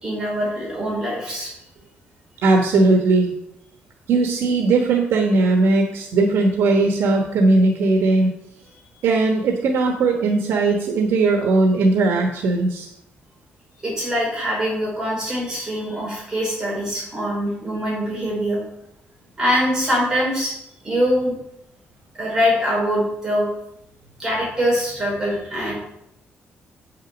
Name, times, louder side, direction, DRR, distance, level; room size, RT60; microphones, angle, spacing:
voice 1, 0.0-1.5 13.8-18.6 19.4-20.5 20.8-21.3 22.2-23.5 24.2-25.7, equal, 15° right, -5 dB, 4.7 m, -23 dB
voice 2, 2.4-3.3 4.1-8.3 9.0-12.9, right 3 dB, 85° right, 2 dB, 1.2 m, -18 dB
8.8 x 6.5 x 6.1 m, 0.80 s
cardioid pair, 175°, 4 cm